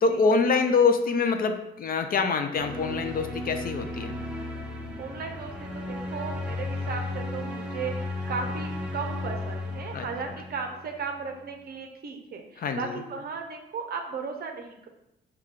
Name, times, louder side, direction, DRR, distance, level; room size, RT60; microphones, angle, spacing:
voice 1, 0.0-4.1 9.9-10.1 12.6-13.0, left 4 dB, 45° left, 7 dB, 0.4 m, -25 dB
sound 1, 2.6-11.4, left 2 dB, 5° right, 0.7 m, -35 dB
voice 2, 5.0-7.9 8.3-14.9, right 5 dB, 50° right, 4 dB, 0.6 m, -36 dB
4.9 x 2.2 x 3.6 m, 0.85 s
cardioid pair, 90°, 20 cm